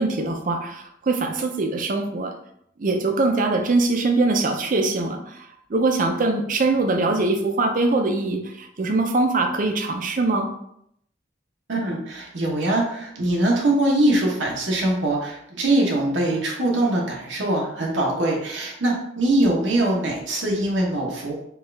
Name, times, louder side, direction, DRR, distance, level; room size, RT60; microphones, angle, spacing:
voice 1, 0.0-2.3 2.8-10.5, right 3 dB, 45° right, 4 dB, 0.5 m, -22 dB
voice 2, 11.7-21.4, right 1 dB, 80° right, -3 dB, 0.9 m, -22 dB
4.5 x 2.4 x 3.2 m, 0.74 s
head